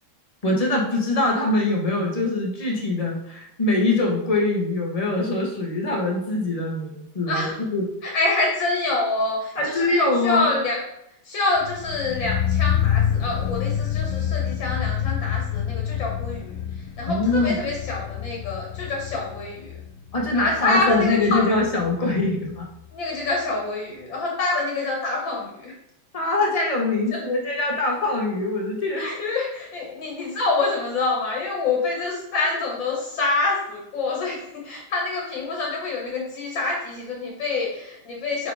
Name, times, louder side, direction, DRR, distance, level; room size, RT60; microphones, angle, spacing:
voice 1, 0.4-7.9 9.6-10.5 17.1-17.6 20.1-22.7 26.1-29.1, left 2 dB, 30° left, -1 dB, 0.7 m, -23 dB
voice 2, 7.3-7.6 8.0-10.8 11.2-19.7 20.3-21.5 22.9-25.8 27.1-27.2 29.0-38.5, left 3 dB, 65° left, -2 dB, 1.9 m, -26 dB
sound 1, 11.6-22.6 22.8-22.9, left 9 dB, 85° left, 0.8 m, -27 dB
4.8 x 4.7 x 4.8 m, 0.80 s
omnidirectional pair, 2.3 m